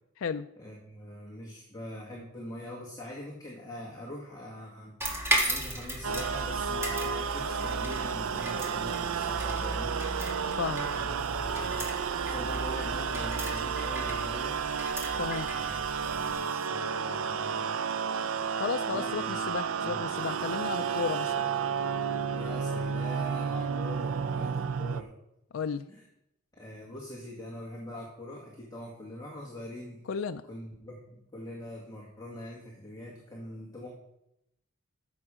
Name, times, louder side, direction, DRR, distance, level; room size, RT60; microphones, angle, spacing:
voice 1, 0.6-5.0 5.5-10.0 10.9-11.9 12.2-14.6 15.5-15.8 16.0-17.8 18.9-19.4 19.8-20.0 22.3-25.1 25.9-26.0 26.5-30.0 30.5-33.9, left 1 dB, 20° left, -3 dB, 2.0 m, -43 dB
sound 1, 5.0-16.3, equal, 15° right, 1.8 m, -36 dB
sound 2, 6.0-25.0, right 6 dB, 90° right, 0.5 m, -32 dB
voice 2, 10.6-10.9 15.2-15.5 18.6-21.5 25.5-25.9 30.1-30.4, left 6 dB, 75° left, 8 dB, 0.4 m, -33 dB
14.5 x 7.2 x 5.0 m, 0.84 s
head